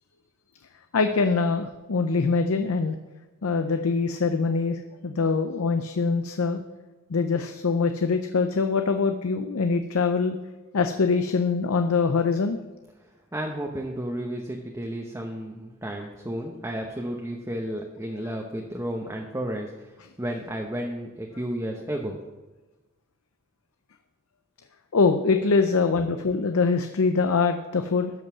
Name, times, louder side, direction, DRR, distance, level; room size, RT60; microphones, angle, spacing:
voice 1, 0.9-3.0 3.4-6.6 7.1-10.4 10.7-12.6 24.9-28.1, left 4 dB, 80° left, 7 dB, 0.6 m, -23 dB
voice 2, 13.3-19.9 20.2-22.2, right 1 dB, 15° right, 1 dB, 0.8 m, -32 dB
12.5 x 5.4 x 6.1 m, 1.2 s
head